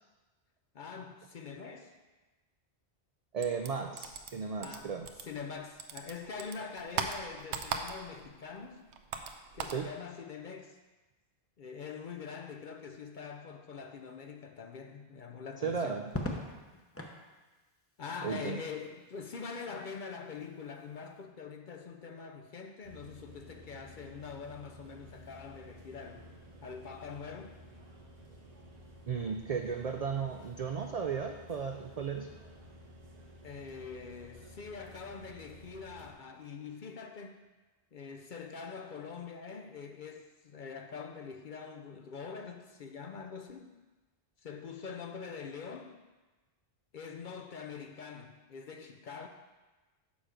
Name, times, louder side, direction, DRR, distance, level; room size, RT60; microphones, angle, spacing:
voice 1, 0.7-1.9 4.6-8.8 9.5-10.8 11.6-16.0 18.0-26.3 26.6-27.5 33.4-37.4 37.9-43.7 44.4-46.0 46.9-49.3, left 5 dB, 55° left, 4 dB, 0.6 m, -44 dB
voice 2, 3.3-5.1 9.7-9.9 15.6-16.1 18.2-18.6 29.1-32.3, right 6 dB, 60° right, 5 dB, 0.4 m, -35 dB
sound 1, 3.4-5.5 5.8-8.3 8.6-9.8, right 6 dB, 80° right, 0.9 m, -38 dB
Crackle, 16.1-17.2 18.8-19.3, left 2 dB, 15° left, 0.7 m, -39 dB
sound 2, 22.8-36.1, equal, 40° right, 1.0 m, -53 dB
7.0 x 6.2 x 5.0 m, 1.2 s
omnidirectional pair, 1.1 m